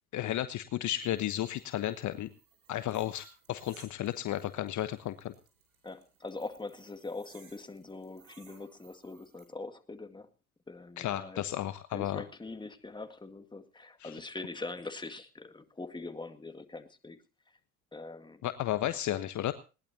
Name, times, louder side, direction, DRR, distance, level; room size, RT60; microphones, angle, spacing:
voice 1, 0.1-2.3 2.7-5.3 11.0-12.2 14.0-14.2 18.4-19.5, left 13 dB, 40° left, 13 dB, 1.2 m, -33 dB
sound 1, 1.0-9.4, right 6 dB, 70° right, 6.8 m, -62 dB
voice 2, 5.8-10.3 10.7-11.4 11.9-17.2 17.9-18.4, left 3 dB, 10° left, 8 dB, 2.1 m, -43 dB
20.5 x 19.0 x 2.8 m, 0.33 s
figure-of-eight pair, 65°, 44 cm